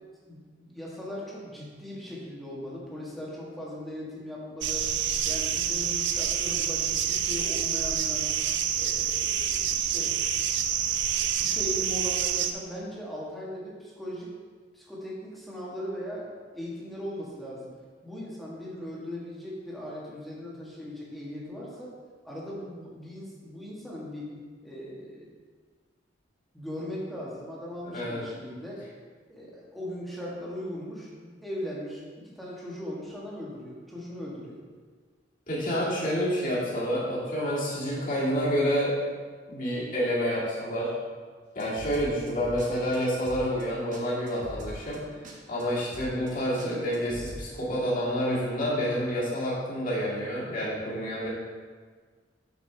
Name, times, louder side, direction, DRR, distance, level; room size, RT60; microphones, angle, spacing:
voice 1, 0.3-4.9 5.2-8.3 8.7-10.2 11.2-14.3 14.7-17.7 18.0-21.9 22.2-24.3 24.6-25.3 26.5-28.8 29.3-34.6, equal, ahead, -6 dB, 1.5 m, -39 dB
sound 1, 4.6-12.5, right 8 dB, 65° right, 0.5 m, -27 dB
voice 2, 27.8-28.2 35.5-39.0 39.5-40.9 41.6-45.0 45.5-51.3, equal, 45° left, -7 dB, 2.1 m, -28 dB
sound 2, 41.6-42.7 42.9-43.0 43.2-43.6 43.9-44.0 44.3-45.0 45.2-45.3 45.6-45.7 45.9-46.3 46.6-47.4, right 1 dB, 45° right, 1.1 m, -41 dB
7.0 x 6.5 x 3.4 m, 1.5 s
head